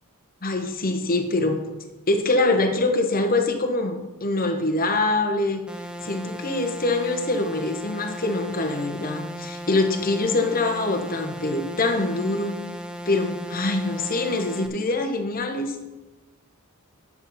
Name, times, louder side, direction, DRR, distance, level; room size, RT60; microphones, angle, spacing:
voice 1, 0.4-1.6 2.1-5.6 6.0-12.6 13.0-15.8, left 2 dB, 40° left, 5 dB, 1.1 m, -24 dB
sound 1, 5.7-14.7, equal, 5° right, 0.6 m, -36 dB
9.9 x 7.2 x 4.2 m, 1.1 s
head